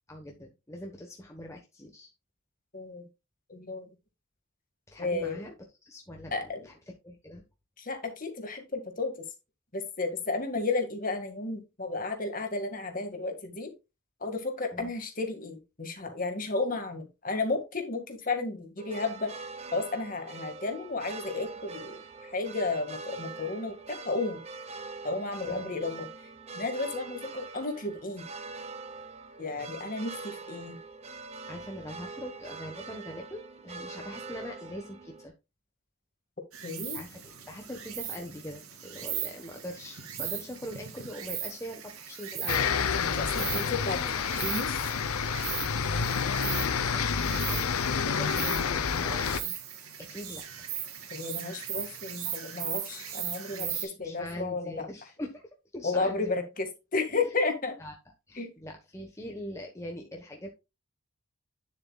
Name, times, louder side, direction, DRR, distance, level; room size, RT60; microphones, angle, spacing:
voice 1, 0.1-2.1 4.9-5.6 5.8-7.4 14.7-14.9 25.4-25.7 31.1-35.3 36.9-37.2 37.5-42.7 43.4-44.2 46.7-47.1 47.3-49.6 50.0-50.7 53.5-55.4 55.7-56.3 57.8-57.9 58.3-60.5, left 1 dB, 15° left, 1 dB, 1.1 m, -42 dB
voice 2, 2.7-3.0 3.5-3.9 5.0-5.4 6.3-6.7 7.8-9.1 9.7-13.7 14.2-19.3 19.7-22.0 22.3-24.4 25.0-26.1 26.6-28.3 29.4-30.8 36.6-37.0 43.0-44.0 44.4-44.8 51.1-53.7 54.0-54.9 55.8-57.8 58.4-58.5, left 3 dB, 40° left, 5 dB, 1.9 m, -33 dB
sound 1, 18.8-35.3, right 4 dB, 30° right, 0.9 m, -43 dB
Insect, 36.5-53.8, right 9 dB, 85° right, 2.2 m, -38 dB
sound 2, 42.5-49.4, left 6 dB, 85° left, 0.7 m, -29 dB
9.9 x 7.2 x 2.3 m, 0.25 s
head